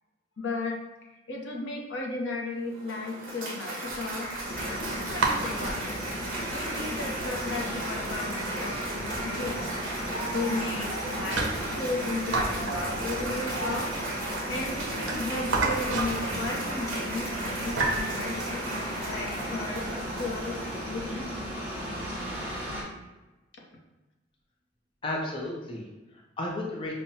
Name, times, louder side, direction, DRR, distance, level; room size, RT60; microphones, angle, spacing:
voice 1, 0.4-0.8 1.3-6.0 6.5-9.7 10.3-13.9 14.5-18.6 19.0-20.6 20.9-21.3, left 2 dB, 75° left, 0 dB, 0.7 m, -35 dB
Cheering / Applause, 2.6-21.2, right 1 dB, 45° right, 1.0 m, -35 dB
sound 1, 3.9-18.0, right 3 dB, 75° right, 0.6 m, -34 dB
sound 2, 4.4-22.8, equal, 10° right, 0.7 m, -37 dB
voice 2, 25.0-26.9, left 1 dB, 25° left, -1 dB, 0.5 m, -34 dB
5.4 x 2.1 x 2.7 m, 1.1 s
head